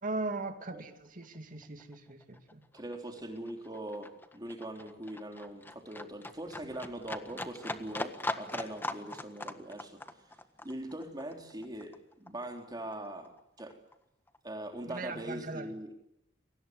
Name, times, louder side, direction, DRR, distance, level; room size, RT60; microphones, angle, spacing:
voice 1, 0.0-2.6 14.9-15.7, right 2 dB, 45° right, 2.5 m, -39 dB
Livestock farm animals working animals, 1.2-1.4 1.6-12.6 12.9-13.9 14.3-14.4, left 2 dB, 10° left, 1.5 m, -41 dB
voice 2, 2.7-10.3 10.6-13.8 14.4-15.9, right 1 dB, 20° right, 3.6 m, -42 dB
29.5 x 24.0 x 8.0 m
head